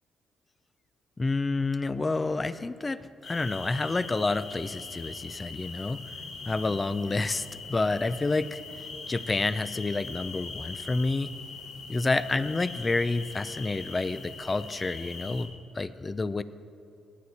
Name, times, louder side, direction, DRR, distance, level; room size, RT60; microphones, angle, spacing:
voice 1, 1.2-6.0 6.5-8.6 9.1-11.3 11.9-16.4, left 3 dB, 25° left, 14 dB, 0.5 m, -29 dB
sound 1, 3.2-15.5, left 4 dB, 80° left, 2.0 m, -42 dB
18.5 x 8.0 x 4.3 m, 2.6 s
cardioid pair, 90°, 0 cm